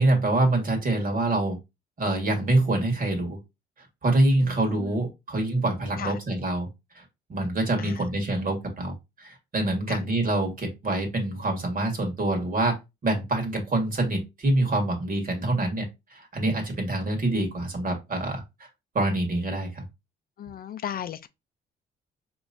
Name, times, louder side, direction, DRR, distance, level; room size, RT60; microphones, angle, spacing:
voice 1, 0.0-1.6 2.0-3.4 3.8-6.7 6.9-7.0 7.3-12.7 13.0-18.4 18.9-19.8, right 2 dB, 45° right, 1.7 m, -25 dB
voice 2, 4.4-5.0 6.0-6.2 7.8-8.1 9.9-10.0 20.4-21.3, left 9 dB, 50° left, 0.4 m, -36 dB
4.8 x 3.0 x 2.6 m
cardioid pair, 90°, 20 cm